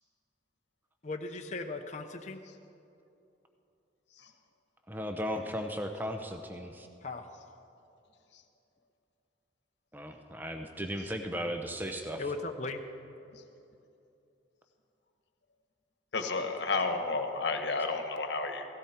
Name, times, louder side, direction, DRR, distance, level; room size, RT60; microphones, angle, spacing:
voice 1, 1.0-2.4 7.0-7.5 12.2-12.8, left 3 dB, 35° left, 4 dB, 0.7 m, -38 dB
voice 2, 4.9-6.9 9.9-12.2, equal, 10° right, 5 dB, 0.7 m, -36 dB
voice 3, 16.1-18.7, left 3 dB, 60° left, 5 dB, 1.3 m, -31 dB
16.5 x 16.5 x 4.4 m, 2.7 s
head